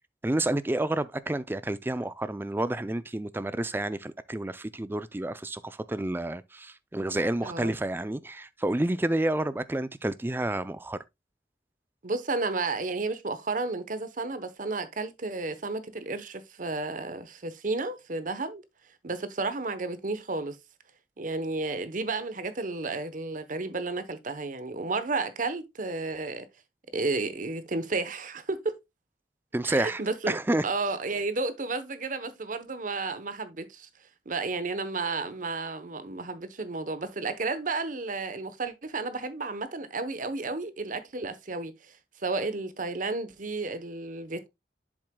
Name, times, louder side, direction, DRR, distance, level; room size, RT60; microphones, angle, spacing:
voice 1, 0.2-11.0 29.5-30.0 30.3-30.6, right 1 dB, 10° right, 0.4 m, -29 dB
voice 2, 7.4-7.7 12.0-18.6 19.0-20.6 21.2-26.5 26.9-28.7 29.6-33.9 34.3-44.5, right 3 dB, 45° right, 0.9 m, -32 dB
7.7 x 7.3 x 2.2 m
head